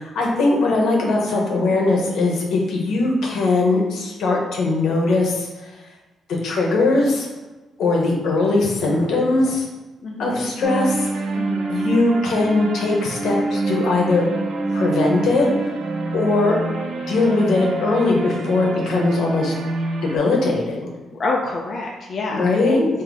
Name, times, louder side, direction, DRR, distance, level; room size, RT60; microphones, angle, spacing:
voice 1, 0.0-5.7 6.4-7.3 7.8-9.7 10.2-11.2 11.7-14.3 14.7-15.7 16.1-16.6 17.1-19.5 20.0-20.9 22.3-22.9, left 2 dB, 75° left, 0 dB, 0.8 m, -20 dB
voice 2, 10.0-10.5 11.3-11.7 21.1-22.8, left 3 dB, 45° left, -1 dB, 0.4 m, -27 dB
sound 1, 10.6-20.2, right 2 dB, 60° right, 0.5 m, -26 dB
3.4 x 2.7 x 4.0 m, 1.2 s
cardioid pair, 115°, 0 cm